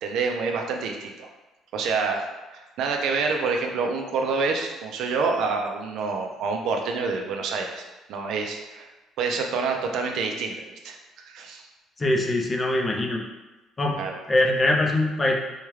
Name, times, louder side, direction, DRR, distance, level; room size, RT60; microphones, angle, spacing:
voice 1, 0.0-1.3 1.7-8.9 9.2-11.6 14.0-14.1, right 4 dB, 70° right, 2 dB, 0.5 m, -27 dB
voice 2, 12.0-13.2 13.8-14.0 14.3-15.4, left 1 dB, 25° left, 0 dB, 0.5 m, -22 dB
4.5 x 2.3 x 3.2 m, 1.1 s
cardioid pair, 125°, 0 cm